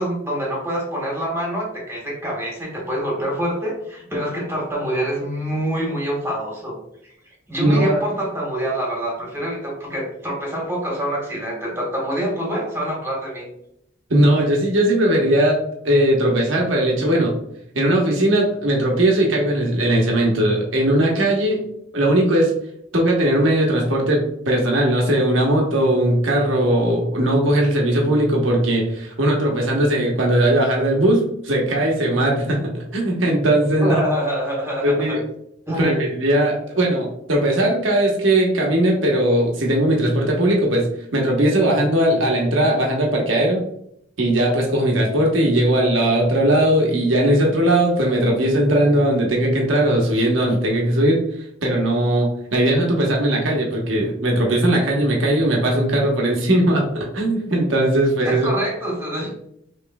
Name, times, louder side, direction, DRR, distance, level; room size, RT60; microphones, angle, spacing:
voice 1, 0.0-6.8 7.5-13.5 33.7-35.2 35.7-36.1 58.2-59.3, right 1 dB, 15° right, -3 dB, 1.4 m, -25 dB
voice 2, 7.6-8.0 14.1-15.6 15.8-17.3 17.7-21.6 21.9-22.5 22.9-34.0 34.8-35.2 35.8-40.9 41.1-43.6 44.2-51.2 51.6-58.5, right 1 dB, 75° right, -1 dB, 1.0 m, -19 dB
5.5 x 3.1 x 2.3 m, 0.74 s
head